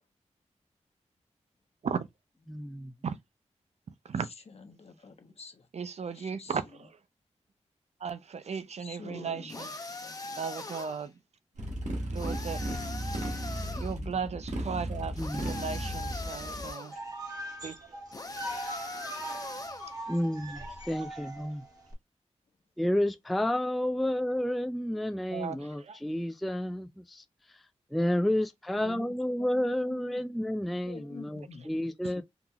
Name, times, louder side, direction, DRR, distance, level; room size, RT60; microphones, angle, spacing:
voice 1, 2.5-2.9 13.8-13.9 15.2-15.5 20.1-21.6 22.8-27.2 27.9-32.2, left 1 dB, ahead, 0.3 m, -31 dB
voice 2, 4.5-5.7 6.0-6.6 8.8-9.7 10.0-10.1 28.8-30.2 30.8-32.2, left 4 dB, 60° left, 0.9 m, -47 dB
voice 3, 5.7-7.0 8.0-9.7 10.4-11.1 12.1-12.6 13.8-16.9 17.6-18.0 20.6-20.7 25.3-26.0, right 6 dB, 65° right, 0.5 m, -36 dB
sound 1, 9.5-11.1 12.2-14.0 15.2-17.0 18.1-19.9, left 2 dB, 30° left, 0.7 m, -41 dB
Motorcycle, 11.6-16.7, right 1 dB, 85° right, 1.1 m, -35 dB
sound 2, 16.9-21.9, right 1 dB, 30° right, 1.4 m, -41 dB
3.8 x 2.9 x 2.3 m
wide cardioid pair, 70°, 12 cm